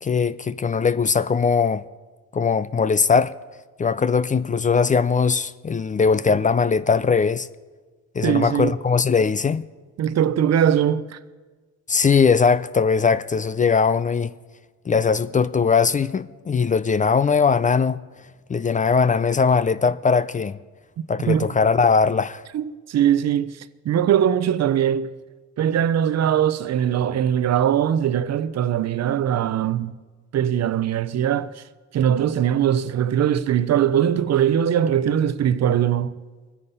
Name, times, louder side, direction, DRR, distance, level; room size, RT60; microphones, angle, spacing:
voice 1, 0.0-1.8 2.3-3.3 3.8-7.5 8.1-9.6 11.9-14.3 14.9-18.0 18.5-20.6 21.1-22.4, left 5 dB, 25° left, 0.4 m, -20 dB
voice 2, 8.2-8.7 10.0-11.2 21.3-21.5 22.5-25.1 25.6-29.9 30.3-31.6 31.9-36.1, right 9 dB, 60° right, 0.7 m, -21 dB
22.0 x 9.9 x 5.5 m
cardioid pair, 90°, 30 cm